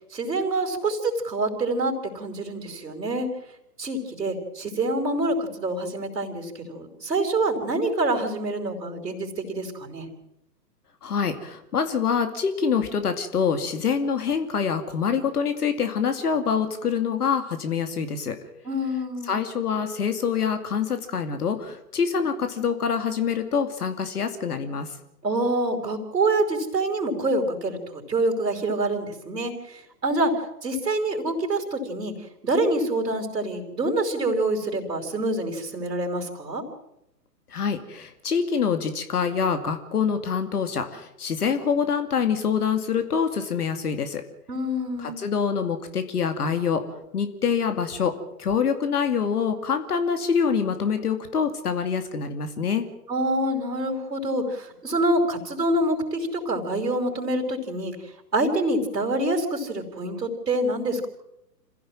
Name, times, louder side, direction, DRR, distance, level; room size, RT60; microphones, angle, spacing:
voice 1, 0.1-3.3 3.8-10.1 18.6-19.4 25.2-29.5 30.0-30.3 30.6-32.1 32.4-36.6 44.5-45.2 53.1-57.9 58.3-61.1, right 2 dB, 75° right, 2 dB, 4.8 m, -26 dB
voice 2, 11.0-18.4 19.3-24.9 37.5-44.2 45.0-46.8 47.1-48.1 48.4-52.9, left 6 dB, 65° left, 8 dB, 2.5 m, -25 dB
27.0 x 16.0 x 7.5 m, 0.84 s
figure-of-eight pair, 125°, 49 cm